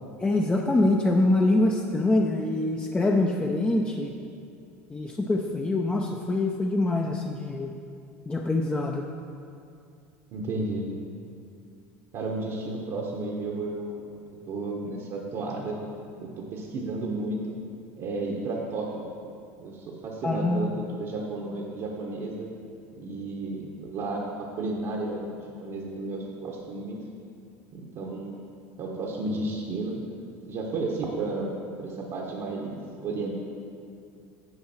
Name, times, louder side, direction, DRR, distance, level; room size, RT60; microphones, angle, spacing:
voice 1, 0.2-4.1 4.9-7.7 8.3-9.0 20.2-20.7, left 2 dB, 15° left, 1 dB, 0.6 m, -24 dB
voice 2, 10.3-10.8 12.1-14.0 14.5-15.8 16.2-17.5 18.0-19.1 19.6-22.5 23.0-27.0 27.7-28.5 28.8-30.0 30.5-33.4, right 2 dB, 55° right, -2 dB, 1.1 m, -32 dB
9.8 x 5.2 x 4.3 m, 2.5 s
hypercardioid pair, 85°, 7 cm